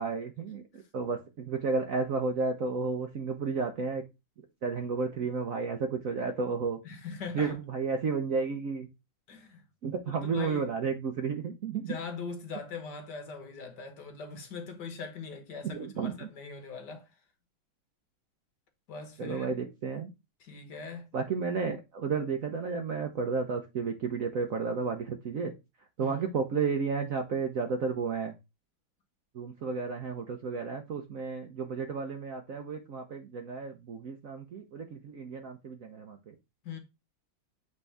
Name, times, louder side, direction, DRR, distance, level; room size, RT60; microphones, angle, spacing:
voice 1, 0.0-4.0 4.4-6.8 7.3-8.9 9.8-11.9 15.6-16.3 19.2-20.1 21.1-25.5 26.0-28.4 29.3-36.3, right 5 dB, 60° right, 0.9 m, -32 dB
voice 2, 6.8-7.6 9.3-9.6 10.2-10.7 11.9-17.1 18.9-19.5 20.4-21.1 26.0-26.2 36.6-36.8, left 5 dB, 60° left, 1.7 m, -41 dB
8.0 x 3.6 x 3.3 m
omnidirectional pair, 2.2 m